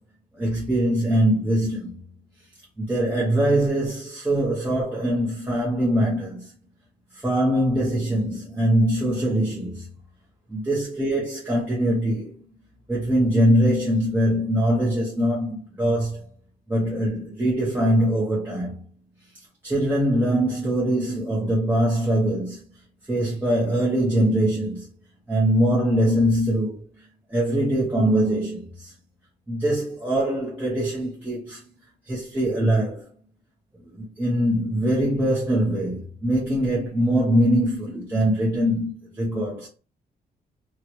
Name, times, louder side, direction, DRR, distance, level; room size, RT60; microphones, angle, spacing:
voice 1, 0.4-2.0 2.8-6.5 7.1-9.9 10.5-12.3 12.9-16.2 16.7-18.8 19.6-22.6 23.1-24.9 25.3-26.8 27.3-28.9 29.5-31.6 32.1-33.1 33.9-39.7, right 1 dB, 10° right, 0.8 m, -22 dB
3.0 x 2.9 x 3.0 m
cardioid pair, 160°, 17 cm